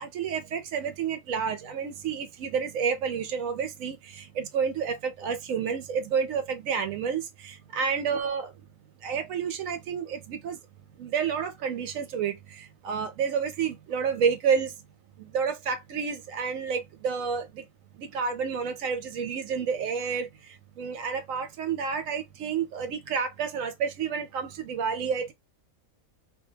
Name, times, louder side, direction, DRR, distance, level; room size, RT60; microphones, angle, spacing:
voice 1, 0.0-8.5 9.0-10.6 11.0-14.7 15.2-17.6 18.0-20.3 20.8-25.3, right 6 dB, 75° right, 0.9 m, -30 dB
2.5 x 2.2 x 2.7 m
omnidirectional pair, 1.5 m